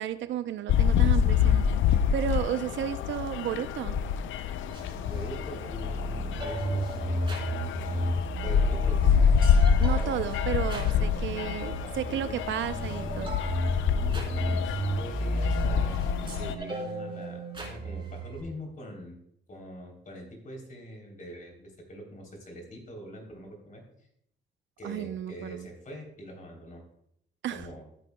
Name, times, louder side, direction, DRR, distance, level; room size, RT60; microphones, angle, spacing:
voice 1, 0.0-4.0 9.8-13.4 24.8-25.7 27.4-27.6, right 10 dB, 70° right, 12 dB, 0.6 m, -33 dB
sound 1, 0.7-16.5, left 7 dB, 75° left, 0.5 m, -26 dB
sound 2, 4.7-18.4, right 1 dB, 25° right, 3.5 m, -33 dB
voice 2, 5.0-8.1 8.3-9.3 9.9-10.3 11.8-12.5 14.1-16.0 16.3-19.2 19.5-23.8 24.8-26.8 27.5-27.8, equal, 40° left, 1 dB, 3.3 m, -43 dB
13.5 x 8.5 x 2.2 m, 0.74 s
cardioid pair, 90°, 20 cm